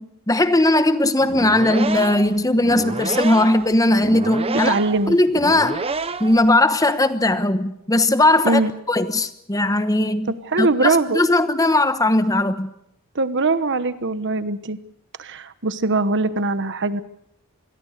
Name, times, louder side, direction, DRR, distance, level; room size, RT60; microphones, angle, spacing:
voice 1, 0.0-4.7 5.1-5.8 6.2-8.6 8.9-12.7, left 1 dB, 15° left, 11 dB, 1.1 m, -18 dB
sound 1, 1.2-6.5, right 3 dB, 25° right, 0.9 m, -29 dB
voice 2, 4.6-5.2 8.4-8.7 10.5-11.2 13.1-14.8 15.2-17.0, right 3 dB, 55° right, 12 dB, 1.2 m, -21 dB
26.5 x 21.5 x 6.7 m, 0.78 s
head